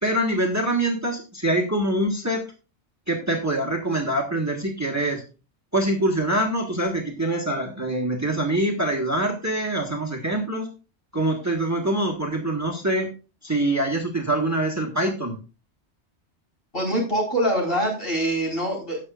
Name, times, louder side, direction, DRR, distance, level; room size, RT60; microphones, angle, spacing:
voice 1, 0.0-2.4 3.1-5.2 5.7-10.7 11.1-13.1 13.4-15.4, right 1 dB, 15° right, 2 dB, 1.6 m, -24 dB
voice 2, 16.7-19.1, right 1 dB, 55° left, -2 dB, 4.8 m, -24 dB
17.0 x 6.6 x 2.5 m, 0.33 s
omnidirectional pair, 1.1 m